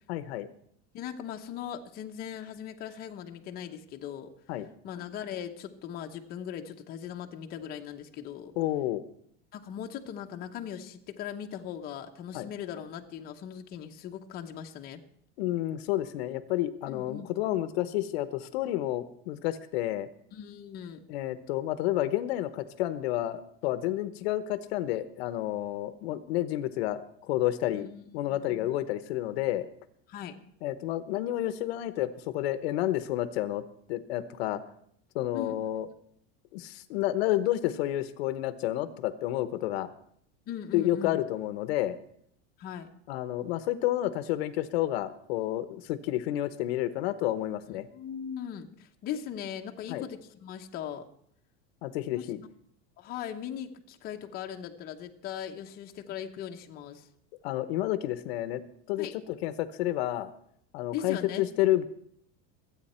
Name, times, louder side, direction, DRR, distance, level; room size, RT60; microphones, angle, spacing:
voice 1, 0.1-0.5 4.5-4.7 8.6-9.0 12.3-12.5 15.4-20.1 21.1-27.9 28.1-29.7 30.6-33.6 33.9-34.6 35.1-35.9 36.5-39.9 40.7-42.0 43.1-47.9 49.9-50.0 51.8-52.4 57.4-58.6 58.9-60.3 60.7-61.9, left 14 dB, 75° left, 12 dB, 1.0 m, -30 dB
voice 2, 0.9-4.3 4.8-8.5 9.5-15.0 16.9-17.3 20.3-21.0 27.7-28.7 30.1-30.3 35.3-35.7 40.5-41.1 42.6-42.9 47.9-51.0 52.1-52.3 53.0-57.1 59.0-59.1 60.9-61.5, left 9 dB, 30° left, 3 dB, 0.9 m, -39 dB
25.5 x 9.0 x 4.4 m, 0.68 s
cardioid pair, 170°, 31 cm